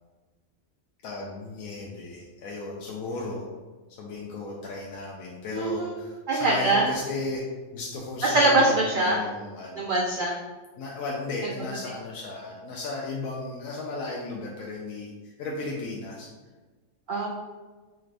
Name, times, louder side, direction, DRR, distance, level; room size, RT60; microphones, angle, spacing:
voice 1, 1.0-3.5 4.0-7.4 7.7-9.9 10.8-16.3, left 3 dB, 75° left, -3 dB, 1.0 m, -35 dB
voice 2, 5.5-5.9 6.3-6.8 8.2-9.2 9.8-10.3 17.1-17.3, right 2 dB, 80° right, -2 dB, 0.4 m, -22 dB
4.3 x 2.5 x 3.2 m, 1.3 s
omnidirectional pair, 1.4 m